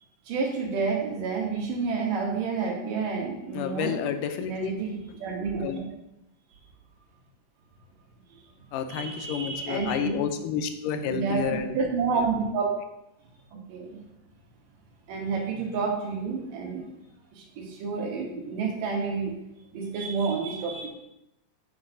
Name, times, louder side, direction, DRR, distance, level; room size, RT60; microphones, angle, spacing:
voice 1, 0.3-3.9 4.4-5.8 8.3-10.2 11.1-11.4 11.7-12.7 13.5-14.0 15.1-16.9 17.3-19.3 19.7-20.9, right 5 dB, 85° right, 0 dB, 3.0 m, -30 dB
voice 2, 3.5-4.7 5.6-5.8 8.7-11.8 12.2-12.3, left 8 dB, 90° left, 8 dB, 2.3 m, -30 dB
8.5 x 8.4 x 2.7 m, 0.86 s
omnidirectional pair, 3.7 m